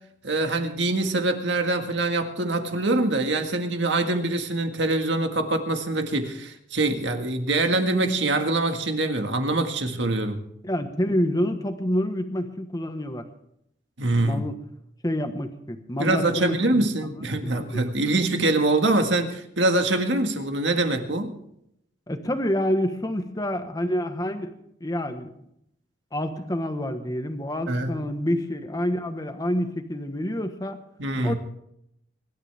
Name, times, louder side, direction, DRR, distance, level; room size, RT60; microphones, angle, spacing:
voice 1, 0.2-10.4 14.0-14.5 16.0-21.4 27.7-27.9 31.0-31.3, right 2 dB, 65° right, 1.8 m, -24 dB
voice 2, 10.6-13.3 14.2-14.6 15.0-17.8 22.1-24.5 24.8-25.3 26.1-30.8 31.2-31.3, equal, 20° left, 1.3 m, -28 dB
24.0 x 12.0 x 3.5 m
head